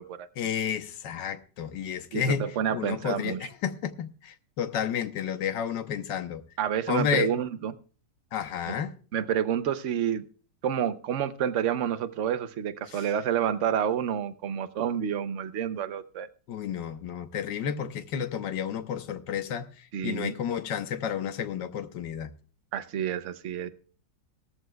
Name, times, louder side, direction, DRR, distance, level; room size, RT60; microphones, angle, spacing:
voice 1, 0.4-6.4 6.9-7.3 8.3-8.9 12.9-13.1 16.5-22.3, left 8 dB, 90° left, 1.5 m, -31 dB
voice 2, 2.1-3.5 6.6-7.7 8.7-8.8 9.1-10.2 10.6-16.3 19.9-20.3 22.7-23.7, right 9 dB, 55° right, 0.9 m, -29 dB
17.5 x 14.0 x 2.3 m
omnidirectional pair, 1.9 m